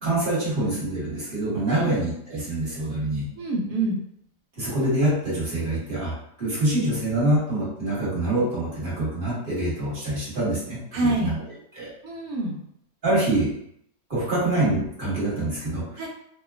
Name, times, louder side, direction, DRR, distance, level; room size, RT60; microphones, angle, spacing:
voice 1, 0.0-3.3 4.6-11.4 11.7-11.9 13.0-13.5 14.1-16.0, right 1 dB, 35° right, -8 dB, 1.3 m, -25 dB
voice 2, 3.4-4.0 10.9-11.4 12.0-12.6 16.0-16.1, right 2 dB, 70° right, 0 dB, 1.1 m, -26 dB
2.8 x 2.2 x 2.3 m, 0.72 s
omnidirectional pair, 1.8 m